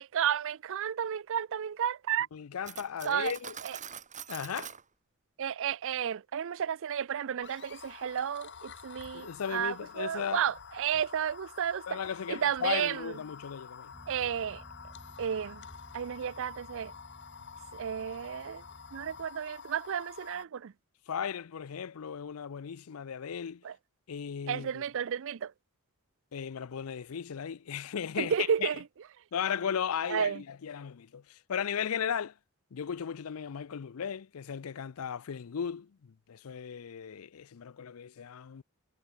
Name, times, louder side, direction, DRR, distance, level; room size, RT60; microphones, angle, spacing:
voice 1, 0.0-2.3 3.0-3.3 3.6-3.8 5.4-12.0 12.3-13.2 14.1-14.6 15.2-15.6 15.9-16.9 17.7-18.6 18.9-20.7 23.6-23.8 24.5-25.5 28.2-28.8 30.1-30.4, right 8 dB, 65° right, 0.5 m, -32 dB
voice 2, 2.3-3.5 4.3-4.7 9.1-10.4 11.9-13.9 21.1-23.6 24.1-24.8 26.3-28.7 29.3-32.3 32.7-38.6, left 7 dB, 75° left, 0.5 m, -36 dB
Cutlery silverware, 2.6-4.8, right 8 dB, 35° right, 2.5 m, -44 dB
sound 1, 7.4-20.4, left 6 dB, 55° left, 2.1 m, -49 dB
sound 2, 13.9-19.3, equal, 5° right, 5.7 m, -55 dB
head